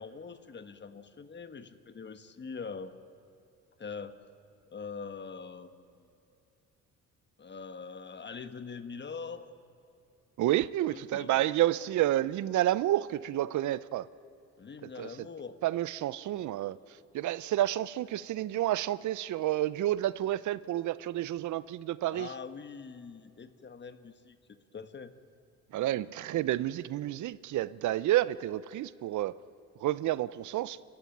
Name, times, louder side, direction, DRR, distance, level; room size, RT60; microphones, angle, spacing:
voice 1, 0.0-2.9 3.8-4.1 4.7-6.1 7.4-9.5 10.9-11.4 14.6-15.6 22.1-24.4 24.7-25.1, left 5 dB, 35° left, 11 dB, 1.4 m, -43 dB
voice 2, 10.4-14.1 15.0-15.1 15.6-16.8 17.1-22.3 25.7-29.3 29.8-30.8, right 14 dB, 75° right, 18 dB, 0.7 m, -30 dB
29.0 x 14.5 x 9.2 m, 2.8 s
cardioid pair, 90°, 30 cm